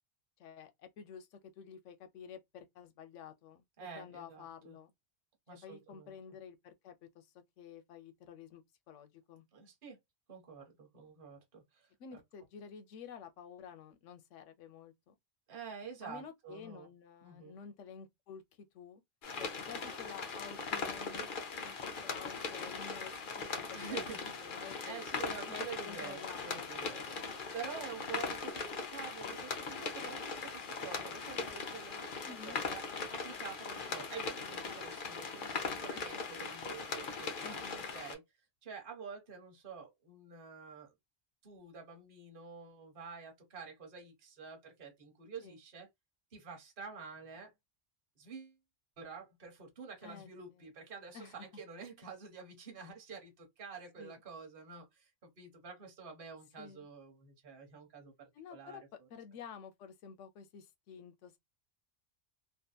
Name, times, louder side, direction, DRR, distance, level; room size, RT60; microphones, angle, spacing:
voice 1, 0.4-4.9 5.6-9.4 12.0-15.1 16.0-18.4 18.7-19.0 19.4-21.3 21.6-24.0 24.4-25.0 25.8-26.9 27.2-27.4 32.3-32.6 36.1-36.5 37.4-37.8 45.4-45.6 50.0-50.3 50.6-50.7 51.1-51.5 54.0-54.2 56.6-56.9 58.3-58.8 59.1-61.4, left 7 dB, 85° left, 1.0 m, -51 dB
voice 2, 3.8-4.8 5.5-6.2 9.5-10.0 10.3-12.2 15.5-16.9 17.2-17.5 21.1-21.3 23.7-24.3 24.6-32.8 33.1-38.2 38.6-40.9 41.4-45.9 46.3-47.5 48.2-48.6 49.0-59.1, right 5 dB, 50° right, 1.1 m, -48 dB
sound 1, 19.2-38.1, left 4 dB, 50° left, 0.7 m, -40 dB
2.7 x 2.4 x 2.2 m
omnidirectional pair, 1.2 m